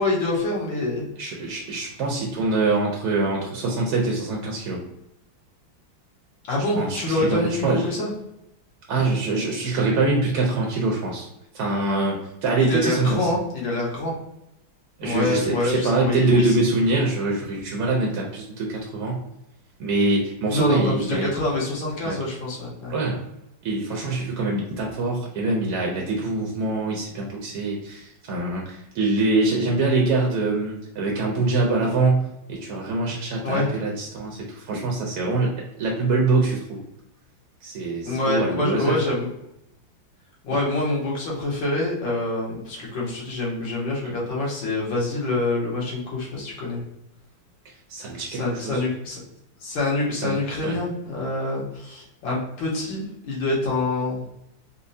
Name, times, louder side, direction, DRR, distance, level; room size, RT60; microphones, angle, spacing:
voice 1, 0.0-1.1 6.5-8.1 12.6-14.2 15.0-16.5 20.5-22.9 33.4-33.7 38.1-39.3 40.4-46.8 48.3-49.2 49.6-54.2, left 2 dB, 75° left, -4 dB, 1.7 m, -26 dB
voice 2, 1.2-4.8 6.8-7.9 8.9-11.3 11.5-13.3 15.0-19.2 19.8-21.3 22.0-22.2 22.9-23.2 23.6-36.8 37.6-39.0 40.5-40.6 44.0-44.2 47.9-48.8 50.2-50.8, right 3 dB, 75° right, -1 dB, 0.9 m, -24 dB
4.2 x 2.0 x 2.6 m, 0.84 s
omnidirectional pair, 2.2 m